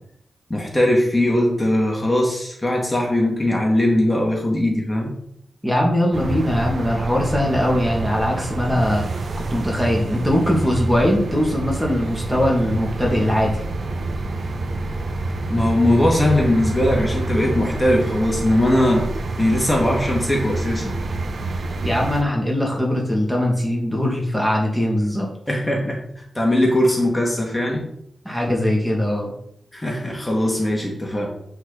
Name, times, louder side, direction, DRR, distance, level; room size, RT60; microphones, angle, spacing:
voice 1, 0.5-5.1 15.5-19.1 19.4-21.0 25.5-27.9 29.7-31.3, left 1 dB, 15° left, -1 dB, 2.3 m, -20 dB
voice 2, 5.6-9.0 9.5-13.6 21.8-25.3 28.2-29.3, left 1 dB, 5° right, -1 dB, 2.4 m, -21 dB
sound 1, 6.1-22.2, right 2 dB, 65° right, 1.0 m, -27 dB
8.1 x 6.7 x 4.1 m, 0.71 s
cardioid pair, 80°, 0 cm